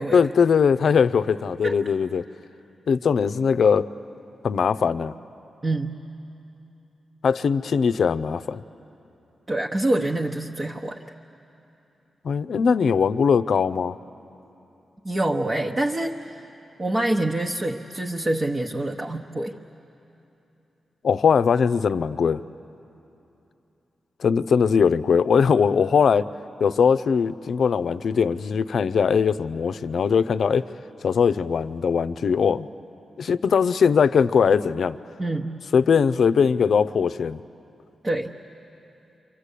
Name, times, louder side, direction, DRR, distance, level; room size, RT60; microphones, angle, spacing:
voice 1, 0.1-2.2 2.9-3.9 4.4-5.1 7.2-8.6 12.2-14.0 21.0-22.4 24.2-26.3 26.6-30.7 31.0-32.7 33.2-35.0 35.7-37.4, left 6 dB, 65° left, 13 dB, 0.6 m, -20 dB
voice 2, 5.6-5.9 9.5-11.0 15.0-16.4 16.8-19.6 35.2-35.6 38.0-38.3, right 1 dB, 30° right, 1 dB, 1.0 m, -26 dB
28.0 x 25.5 x 8.4 m, 2.9 s
wide cardioid pair, 105°, 0 cm